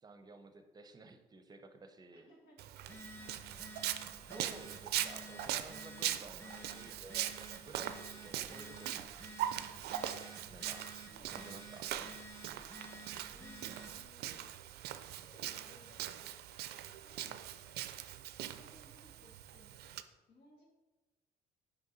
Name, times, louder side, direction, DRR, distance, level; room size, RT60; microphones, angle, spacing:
voice 1, 0.0-2.3 4.3-9.5 10.5-10.9 11.3-11.8, right 3 dB, 25° right, 8 dB, 0.6 m, -53 dB
voice 2, 2.1-3.7 11.0-12.3 13.3-14.5 15.2-18.0 18.4-20.0 20.3-20.6, left 2 dB, 80° left, -3 dB, 1.6 m, -63 dB
Walk footsteps, 2.6-20.0, right 12 dB, 75° right, 0.4 m, -41 dB
Telephone, 2.8-14.0, equal, 15° left, 1.1 m, -52 dB
5.3 x 5.2 x 4.0 m, 1.2 s
cardioid pair, 110°, 17 cm